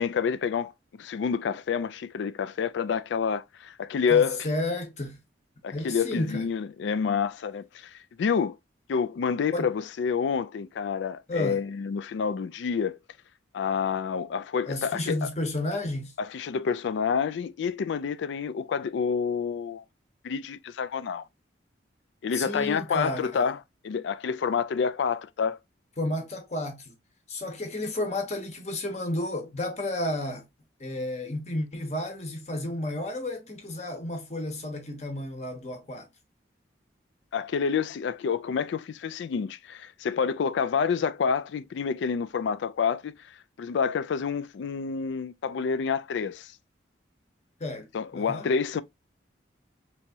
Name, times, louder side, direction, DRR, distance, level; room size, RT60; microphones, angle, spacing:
voice 1, 0.0-4.5 5.6-8.6 8.9-13.0 13.5-15.3 16.2-19.8 20.2-21.2 22.2-23.6 23.8-25.6 37.3-46.5 47.9-48.8, left 6 dB, 75° left, 0.3 m, -28 dB
voice 2, 4.1-5.2 5.7-6.5 9.5-9.7 11.3-11.6 14.7-16.1 22.3-23.4 26.0-26.9 27.3-30.4 30.8-36.1 47.6-47.9 48.1-48.4, left 1 dB, 35° left, 0.9 m, -32 dB
3.4 x 3.0 x 2.7 m
head